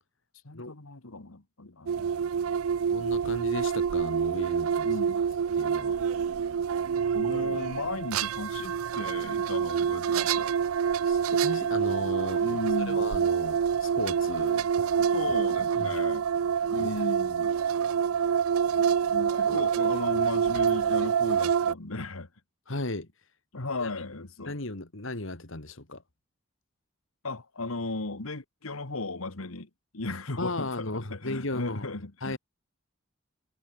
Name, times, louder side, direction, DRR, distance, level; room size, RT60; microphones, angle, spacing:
voice 1, 0.4-2.3 4.8-5.2 7.1-10.5 12.4-13.0 15.0-16.3 16.7-17.6 18.8-22.3 23.5-24.6 27.2-32.4, left 2 dB, 85° left, 1.8 m, -36 dB
sound 1, 1.9-21.7, right 7 dB, 85° right, 0.4 m, -27 dB
voice 2, 2.9-5.0 5.5-6.0 10.9-12.6 12.9-14.7 15.8-16.0 16.8-17.2 19.4-19.6 22.7-23.3 23.8-23.9 24.4-26.0 30.4-31.8 32.2-32.4, left 2 dB, 65° left, 2.4 m, -36 dB
head